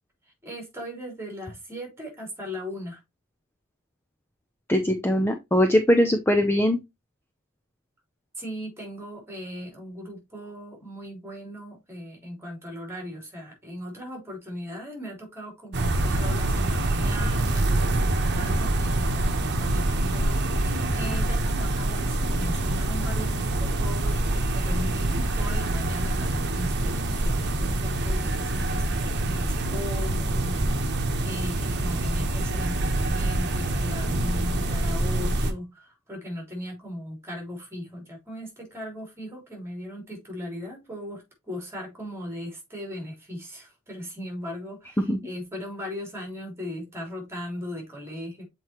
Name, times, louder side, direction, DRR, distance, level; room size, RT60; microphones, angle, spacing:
voice 1, 0.2-3.0 8.4-48.4, equal, 10° right, 3.2 m, -38 dB
voice 2, 4.7-6.8 45.1-45.2, equal, 10° left, 0.6 m, -21 dB
sound 1, 15.7-35.5, right 1 dB, 55° right, 1.1 m, -25 dB
7.6 x 4.5 x 3.0 m
head